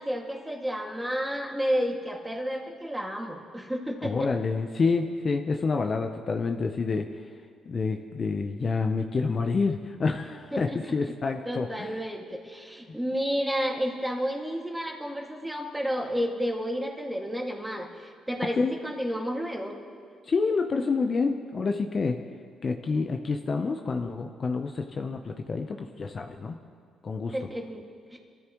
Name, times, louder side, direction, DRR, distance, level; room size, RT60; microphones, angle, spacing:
voice 1, 0.0-4.3 10.5-10.9 11.4-19.8 27.3-27.8 28.1-28.2, equal, 5° right, 0 dB, 2.2 m, -31 dB
voice 2, 4.0-7.2 7.7-12.0 18.5-18.7 20.3-22.2 22.6-26.6 27.0-27.3, left 4 dB, 40° left, 4 dB, 0.8 m, -28 dB
26.5 x 13.5 x 3.1 m, 2.1 s
cardioid pair, 90°, 0 cm